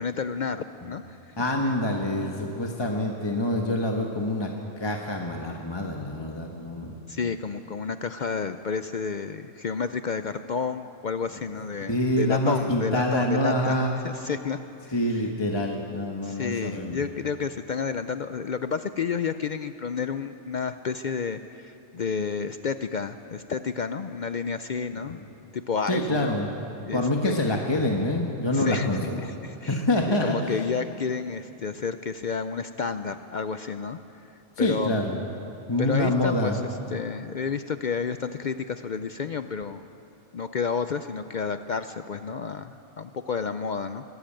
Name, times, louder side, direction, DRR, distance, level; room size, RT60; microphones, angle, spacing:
voice 1, 0.0-1.5 7.1-14.9 16.2-25.2 25.5-26.3 26.9-27.4 28.5-34.3 34.6-34.9 35.8-36.6 36.9-39.8 40.3-44.0, left 5 dB, 55° left, 10 dB, 0.5 m, -31 dB
voice 2, 1.4-4.5 4.8-6.9 11.8-14.0 14.9-17.0 25.1-25.2 25.9-29.2 29.7-30.6 34.6-35.2 35.7-36.6, left 1 dB, 20° left, 1 dB, 1.3 m, -26 dB
23.0 x 13.0 x 8.9 m, 2.8 s
omnidirectional pair, 1.3 m